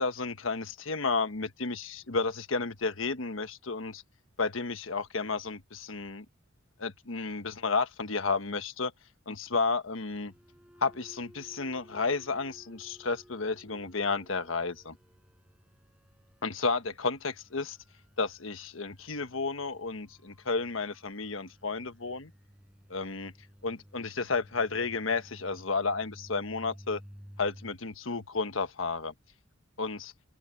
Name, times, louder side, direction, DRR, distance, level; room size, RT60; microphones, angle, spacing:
voice 1, 0.0-4.0 4.4-6.2 6.8-8.9 9.3-10.3 10.8-15.0 16.4-17.8 18.2-22.3 22.9-23.3 23.6-27.0 27.4-29.1 29.8-30.1, left 4 dB, 75° left, 1.3 m, -32 dB
sound 1, 10.1-27.7, equal, 5° right, 6.3 m, -55 dB
open air
head